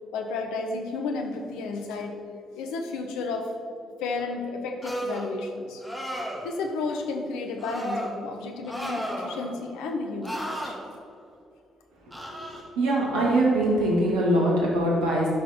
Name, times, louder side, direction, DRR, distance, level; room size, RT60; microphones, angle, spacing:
voice 1, 0.1-2.2 2.5-3.5 4.0-5.8 6.4-10.8, left 3 dB, 65° left, 4 dB, 0.9 m, -32 dB
sound 1, 4.8-5.3 5.8-6.5 7.6-8.1 8.7-9.5 10.2-10.7 12.1-12.6, equal, 5° left, 2.0 m, -33 dB
voice 2, 12.8-15.3, right 1 dB, 70° right, -4 dB, 2.4 m, -22 dB
11.0 x 6.3 x 4.4 m, 2.6 s
figure-of-eight pair, 40°, 0 cm